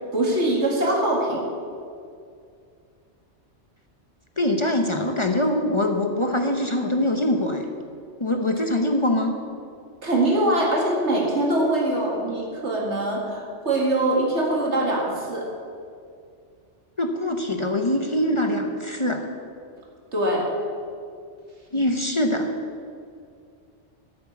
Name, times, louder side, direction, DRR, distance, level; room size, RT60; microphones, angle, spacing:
voice 1, 0.1-1.4 10.0-15.5 20.1-20.5, right 1 dB, 80° right, -1 dB, 2.5 m, -23 dB
voice 2, 4.4-7.6 8.2-9.3 17.0-19.2 21.7-22.5, left 1 dB, 30° left, 4 dB, 0.8 m, -23 dB
12.5 x 8.1 x 7.1 m, 2.3 s
omnidirectional pair, 1.2 m